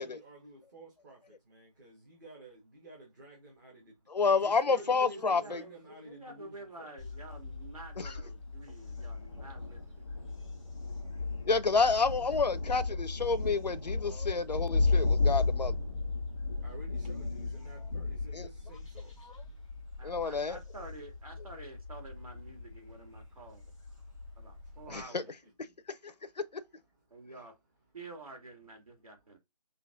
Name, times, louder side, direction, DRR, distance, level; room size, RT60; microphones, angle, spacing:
voice 1, 0.0-6.9 8.8-9.1 10.0-11.5 12.3-12.4 14.8-14.9 16.6-20.0 23.2-23.4 23.9-24.8 25.2-25.7 26.1-26.2 27.1-27.2, right 1 dB, 30° right, 1.4 m, -53 dB
voice 2, 4.1-5.6 11.5-15.7 18.3-18.5 19.2-19.3 20.0-20.6 24.9-25.2 26.0-26.1, left 4 dB, 85° left, 0.6 m, -29 dB
voice 3, 4.6-5.8 6.0-10.3 20.0-23.6 24.4-25.3 27.1-27.5 27.9-29.4, right 2 dB, 60° right, 2.5 m, -49 dB
Thunder, 7.0-25.0, left 3 dB, 10° left, 0.4 m, -35 dB
5.7 x 2.7 x 2.6 m
figure-of-eight pair, 160°, 21 cm